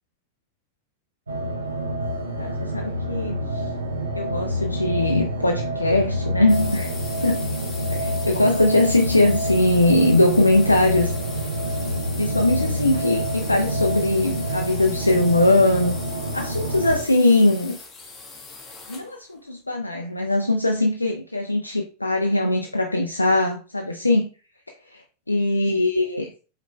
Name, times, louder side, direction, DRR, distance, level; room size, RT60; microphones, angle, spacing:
sound 1, 1.3-17.0, equal, 75° right, 0.6 m, -27 dB
voice 1, 2.4-3.6 4.1-6.9 7.2-7.5 7.9-11.1 12.2-16.0 16.3-17.8 18.9-24.3 25.3-26.3, left 2 dB, 85° left, 0.4 m, -21 dB
sound 2, 6.5-19.2, left 4 dB, 20° left, 1.0 m, -40 dB
5.0 x 3.2 x 2.3 m
figure-of-eight pair, 90°, 0 cm